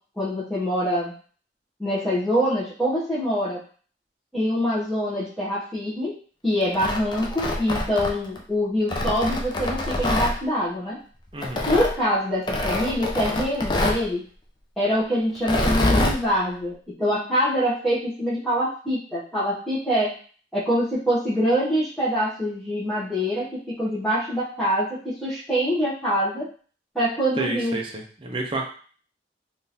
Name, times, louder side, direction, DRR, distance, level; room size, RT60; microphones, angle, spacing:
voice 1, 0.2-1.1 1.8-3.6 4.3-6.2 6.4-11.0 11.7-14.2 14.8-20.1 20.5-26.5 26.9-27.8, equal, ahead, -12 dB, 0.8 m, -24 dB
Tearing, 6.6-8.4 8.9-10.3 11.4-11.9 12.5-14.0 15.4-16.2, left 1 dB, 25° left, 0.4 m, -25 dB
voice 2, 11.3-11.7 27.4-28.7, right 2 dB, 30° right, 1 dB, 0.6 m, -30 dB
3.6 x 2.5 x 2.8 m, 0.43 s
head